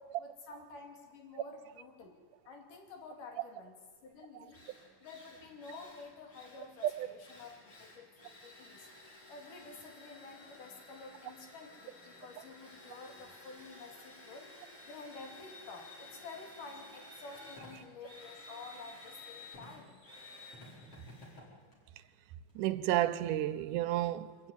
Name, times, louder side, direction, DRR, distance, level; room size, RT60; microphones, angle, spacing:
voice 1, 0.2-2.1 2.5-3.8 4.0-4.6 5.0-8.9 9.3-14.5 14.8-20.0, left 4 dB, 75° left, 4.3 m, -50 dB
Drill, 4.1-4.2 4.5-22.6, left 2 dB, 45° left, 5.9 m, -54 dB
voice 2, 22.6-24.5, right 13 dB, 80° right, 2.3 m, -31 dB
25.0 x 14.5 x 9.2 m
omnidirectional pair, 3.7 m